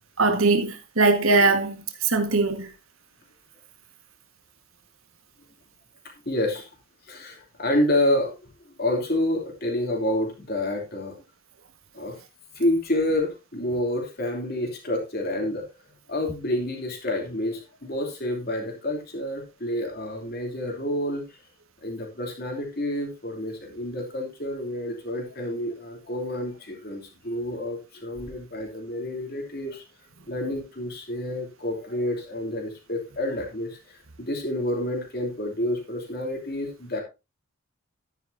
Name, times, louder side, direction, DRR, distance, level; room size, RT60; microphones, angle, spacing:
voice 1, 0.2-2.7, right 3 dB, 75° right, 1.7 m, -21 dB
voice 2, 6.2-6.7 7.1-8.4 8.8-11.1 11.9-12.2 12.5-15.6 16.1-21.2 21.8-29.8 30.3-37.0, left 1 dB, 45° left, 3.1 m, -28 dB
12.0 x 9.9 x 2.8 m
head